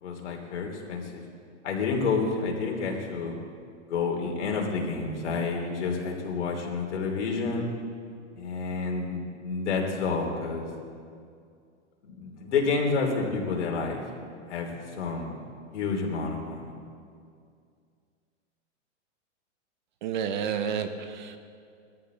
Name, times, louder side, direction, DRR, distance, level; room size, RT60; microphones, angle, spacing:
voice 1, 0.0-1.2 1.6-3.3 3.9-7.7 8.3-10.7 12.0-14.0 14.5-15.4 15.7-16.7, left 4 dB, 70° left, 0 dB, 3.2 m, -29 dB
voice 2, 20.0-21.4, right 7 dB, 40° right, 9 dB, 0.8 m, -30 dB
20.5 x 13.0 x 4.0 m, 2.3 s
supercardioid pair, 165°, 36 cm